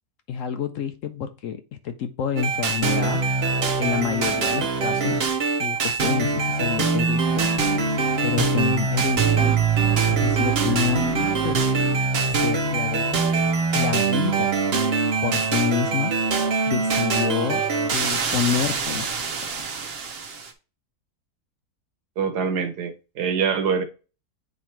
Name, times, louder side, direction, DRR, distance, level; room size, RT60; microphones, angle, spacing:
voice 1, 0.3-3.2 3.8-5.2 5.6-7.5 8.2-9.7 10.1-11.7 12.3-13.1 13.7-14.5 15.2-16.1 16.7-17.6 17.9-19.2 19.5-19.7, left 7 dB, 65° left, 0.9 m, -28 dB
sound 1, 2.4-20.5, right 4 dB, 45° right, 1.0 m, -23 dB
voice 2, 22.2-23.8, right 6 dB, 85° right, 1.5 m, -24 dB
8.9 x 3.2 x 4.4 m
omnidirectional pair, 1.7 m